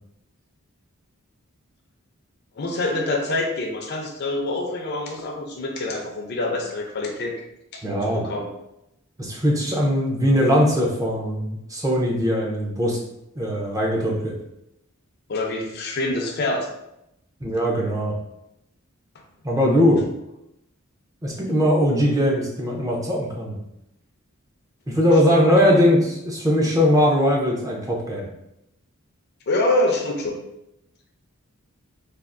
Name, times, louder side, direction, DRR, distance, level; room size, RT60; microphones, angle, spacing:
voice 1, 2.6-7.3 7.7-8.5 15.3-16.7 25.3-25.7 29.5-30.4, left 2 dB, 50° left, 2 dB, 0.5 m, -26 dB
voice 2, 7.8-8.3 9.2-13.0 13.4-14.3 17.4-18.1 19.4-20.0 21.2-23.6 24.9-28.3, equal, 15° right, -2 dB, 0.5 m, -20 dB
3.4 x 2.3 x 2.5 m, 0.84 s
head